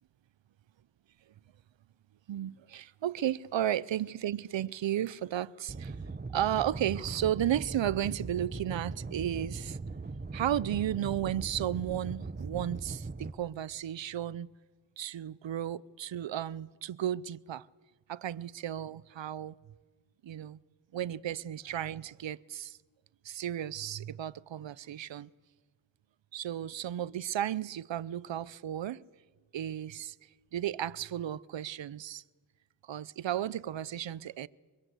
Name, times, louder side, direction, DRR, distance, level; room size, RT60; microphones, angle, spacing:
voice 1, 2.3-6.0 6.3-9.8 10.3-14.5 15.0-17.7 18.1-19.6 20.2-20.6 20.9-22.8 23.2-25.3 26.3-29.0 29.5-30.2 30.5-32.2 32.8-34.5, right 11 dB, 70° right, 0.7 m, -34 dB
sound 1, 5.7-13.3, right 3 dB, 20° right, 1.0 m, -40 dB
24.0 x 23.5 x 8.1 m
wide cardioid pair, 95°, 46 cm